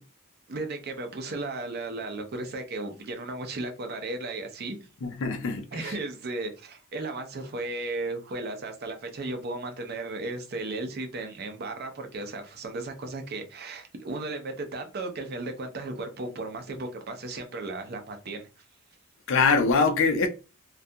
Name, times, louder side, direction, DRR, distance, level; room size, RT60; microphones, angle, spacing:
voice 1, 0.5-4.8 5.7-18.5, right 2 dB, 50° right, 0.5 m, -35 dB
voice 2, 5.0-5.6 19.3-20.3, left 4 dB, 60° left, 0.4 m, -23 dB
2.4 x 2.2 x 2.6 m
head